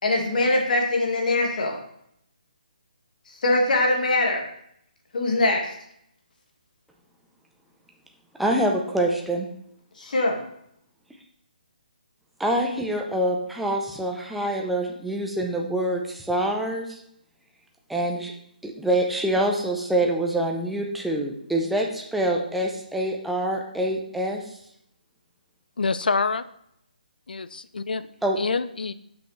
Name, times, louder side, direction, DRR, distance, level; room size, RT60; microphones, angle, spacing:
voice 1, 0.0-1.8 3.4-4.4 5.1-5.7 10.0-10.4, left 2 dB, 60° left, 1 dB, 1.8 m, -22 dB
voice 2, 8.4-9.5 12.4-17.0 17.9-18.3 18.6-24.4 28.2-28.4, right 1 dB, ahead, 0 dB, 0.5 m, -25 dB
voice 3, 25.8-26.4 27.3-28.1 28.4-28.9, left 4 dB, 85° left, 14 dB, 0.4 m, -26 dB
6.5 x 5.7 x 3.1 m, 0.72 s
hypercardioid pair, 160°, 5 cm